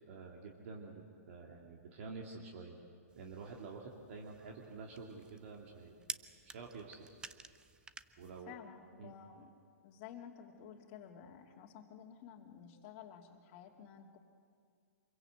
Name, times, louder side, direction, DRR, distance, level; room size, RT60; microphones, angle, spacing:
voice 1, 0.1-2.8 3.2-6.1 6.5-7.1 8.2-8.5 9.0-9.1, right 4 dB, 55° right, -1 dB, 2.9 m, -49 dB
sound 1, 3.1-8.4, right 4 dB, 10° right, 0.7 m, -51 dB
voice 2, 8.5-9.5 9.8-14.2, left 8 dB, 40° left, 0 dB, 2.6 m, -53 dB
26.5 x 22.5 x 8.1 m, 2.3 s
hypercardioid pair, 120°, 9 cm